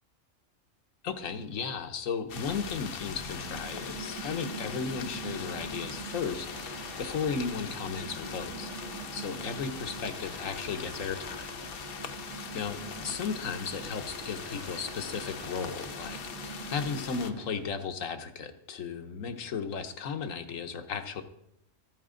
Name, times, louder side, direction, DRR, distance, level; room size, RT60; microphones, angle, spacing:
voice 1, 1.0-8.7 9.1-11.5 12.5-21.2, left 6 dB, 85° left, 7 dB, 1.3 m, -35 dB
sound 1, 2.3-17.3, left 6 dB, 55° left, 0.8 m, -41 dB
Mechanical fan, 3.0-17.8, right 3 dB, 70° right, 1.7 m, -44 dB
14.0 x 9.3 x 3.8 m, 0.82 s
omnidirectional pair, 1.4 m